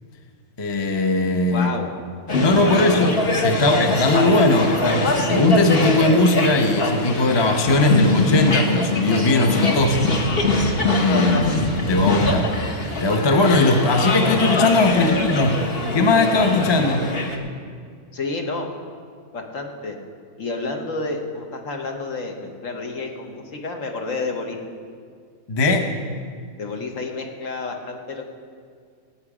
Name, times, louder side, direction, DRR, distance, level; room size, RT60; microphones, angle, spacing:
voice 1, 0.6-1.7 2.4-10.2 10.9-12.5 13.0-15.6 15.9-17.1 25.5-25.9, left 2 dB, 25° left, 5 dB, 0.7 m, -19 dB
voice 2, 1.5-1.9 2.6-2.7 14.8-15.2 18.1-18.7 19.3-20.0 20.4-24.6 26.6-28.3, left 3 dB, 60° left, 3 dB, 1.5 m, -30 dB
sound 1, 2.3-17.4, left 2 dB, 45° left, 1.3 m, -23 dB
17.5 x 8.6 x 4.9 m, 2.1 s
omnidirectional pair, 1.5 m